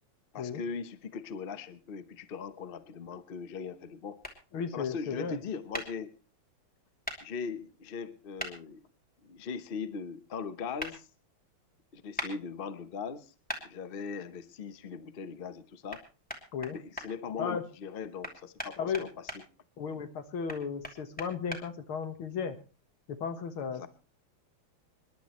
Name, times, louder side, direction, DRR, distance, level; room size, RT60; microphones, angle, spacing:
voice 1, 0.3-4.2 4.7-6.1 7.2-8.9 9.2-11.1 11.9-13.3 13.6-16.0 16.7-19.3 19.9-20.0 23.7-23.9, left 5 dB, 55° left, 12 dB, 0.6 m, -40 dB
sound 1, 4.2-4.4 5.7-5.9 7.0-7.2 8.4-8.5 10.8-10.9 12.2-12.3 13.5-13.6 15.9-16.0 16.3-17.1 18.2-19.4 20.5-21.6, equal, 5° left, 2.5 m, -37 dB
voice 2, 4.5-5.4 16.5-16.8 17.4-17.6 18.8-19.1 19.8-22.6 23.1-23.9, left 6 dB, 70° left, 9 dB, 2.2 m, -35 dB
26.5 x 11.0 x 3.1 m, 0.32 s
omnidirectional pair, 2.4 m